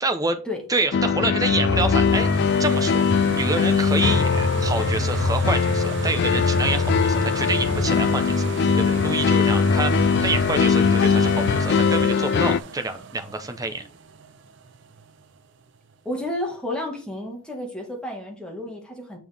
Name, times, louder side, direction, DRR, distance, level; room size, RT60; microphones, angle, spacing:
voice 1, 0.0-0.4 0.7-8.4 8.8-13.9, right 3 dB, 15° right, 7 dB, 0.8 m, -27 dB
sound 1, 0.9-12.6, left 6 dB, 50° left, 0.3 m, -21 dB
sound 2, 1.5-15.2 15.8-15.9, right 2 dB, 55° right, 0.6 m, -30 dB
voice 2, 16.1-19.2, left 1 dB, 5° left, 0 dB, 1.7 m, -31 dB
6.9 x 5.9 x 3.5 m, 0.40 s
head